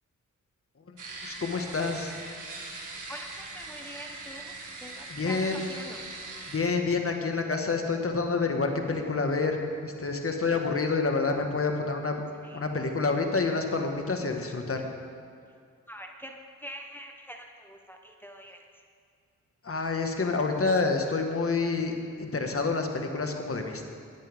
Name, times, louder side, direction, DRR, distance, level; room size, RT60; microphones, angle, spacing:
voice 1, 0.9-2.2 5.1-5.7 6.5-14.8 19.6-23.9, left 4 dB, 45° left, 3 dB, 1.6 m, -28 dB
sound 1, 1.0-6.6, right 3 dB, 70° right, 1.9 m, -41 dB
voice 2, 3.1-4.5 4.8-6.0 12.4-12.6 15.9-16.3 16.6-18.6, equal, 5° left, 2 dB, 1.2 m, -44 dB
18.0 x 10.0 x 3.6 m, 2.3 s
cardioid pair, 50°, 32 cm